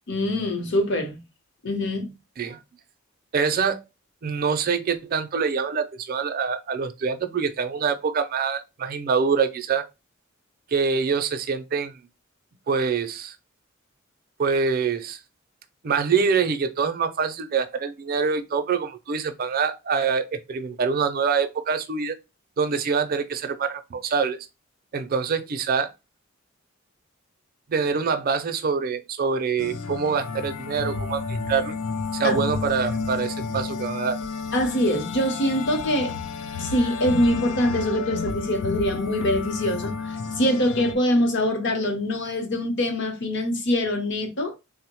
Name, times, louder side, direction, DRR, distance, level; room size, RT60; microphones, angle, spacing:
voice 1, 0.1-1.2 1.6-2.1 32.2-32.4 34.5-36.2 36.6-44.5, left 1 dB, 60° left, 0.8 m, -24 dB
voice 2, 3.3-3.8 4.2-9.8 10.7-12.0 12.7-13.4 14.4-15.2 15.8-22.2 22.6-24.4 24.9-25.9 27.7-31.7 32.1-34.2, right 5 dB, 45° right, 0.4 m, -25 dB
sound 1, 29.6-40.9, left 4 dB, 90° left, 0.5 m, -31 dB
3.5 x 2.1 x 2.9 m
head